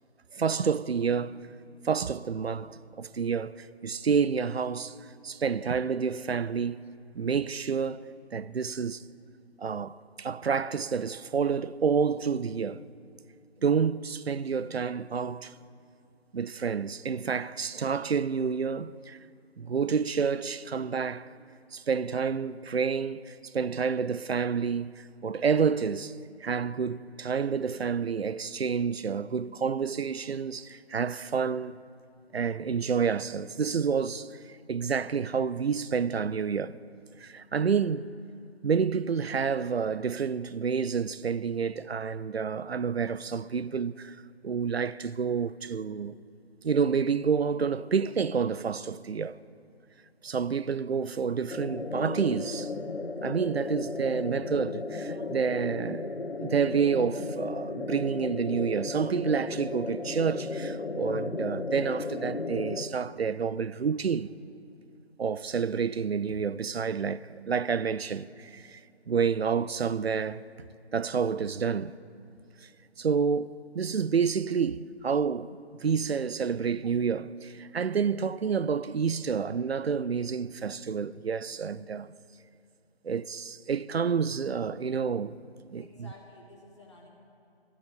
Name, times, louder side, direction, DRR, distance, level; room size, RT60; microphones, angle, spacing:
voice 1, 0.3-1.5 1.8-5.0 5.2-6.9 7.2-9.1 9.6-12.8 13.6-15.5 16.3-19.2 19.6-21.3 21.7-26.1 26.4-31.8 32.3-34.4 34.7-36.8 37.2-38.1 38.6-44.2 44.4-46.1 46.6-49.3 50.2-52.7 53.2-64.3 65.2-68.8 69.1-70.4 70.9-72.0 73.0-82.1 83.0-85.4 85.7-85.8, right 6 dB, 70° right, 0.5 m, -29 dB
sound 1, 51.5-62.8, left 3 dB, 70° left, 0.9 m, -35 dB
voice 2, 85.7-87.1, left 1 dB, 25° left, 1.4 m, -52 dB
12.5 x 9.5 x 6.9 m
figure-of-eight pair, 170°, 33 cm